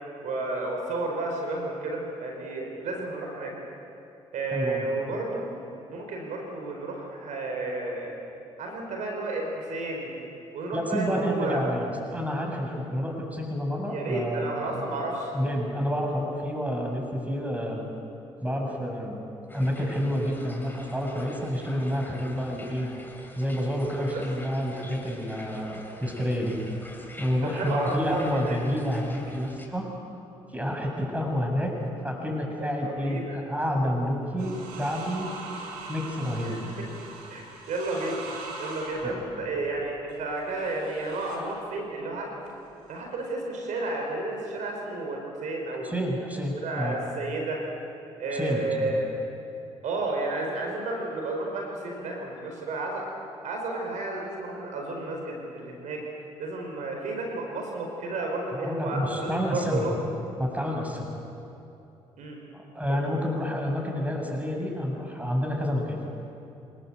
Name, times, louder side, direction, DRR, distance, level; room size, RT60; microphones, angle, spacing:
voice 1, 0.2-3.5 4.3-5.5 5.9-8.1 8.6-10.1 10.5-11.6 13.9-15.3 23.9-24.3 27.4-28.6 32.6-33.4 36.4-36.7 37.3-38.2 38.6-42.3 42.9-45.9 46.6-47.6 48.2-49.1 49.8-53.0 53.4-56.0 56.4-60.1 62.2-62.4 62.9-63.0, right 2 dB, 70° right, 1 dB, 4.9 m, -32 dB
voice 2, 4.5-4.8 10.7-14.8 15.3-17.9 18.4-19.2 19.5-22.9 23.4-26.6 27.2-29.9 30.5-31.7 32.0-35.3 35.9-36.7 39.0-39.3 45.8-47.0 48.3-48.9 58.5-59.9 60.4-61.1 62.5-66.0, equal, 10° right, 1 dB, 7.6 m, -29 dB
sound 1, 19.5-29.7, left 2 dB, 15° left, 4.3 m, -47 dB
sound 2, 34.4-41.5 42.5-43.0, right 3 dB, 85° right, 4.5 m, -42 dB
26.5 x 20.0 x 8.1 m, 2.8 s
hypercardioid pair, 55°, 13 cm